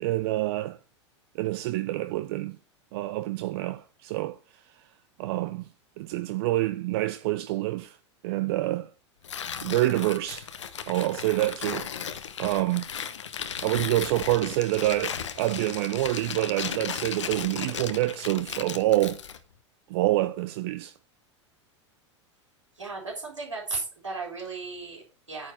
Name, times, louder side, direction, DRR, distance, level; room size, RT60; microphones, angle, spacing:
voice 1, 0.0-0.8 1.3-2.6 2.9-4.4 5.2-5.6 6.0-8.0 8.2-8.9 9.6-10.5 10.9-11.9 12.4-12.9 13.6-19.2 19.9-20.9, right 17 dB, 55° right, 0.7 m, -27 dB
Tearing, 9.2-19.4, left 8 dB, 75° left, 1.0 m, -36 dB
voice 2, 22.8-25.5, right 3 dB, 90° right, 4.1 m, -35 dB
9.5 x 4.6 x 5.8 m
figure-of-eight pair, 90°, 15 cm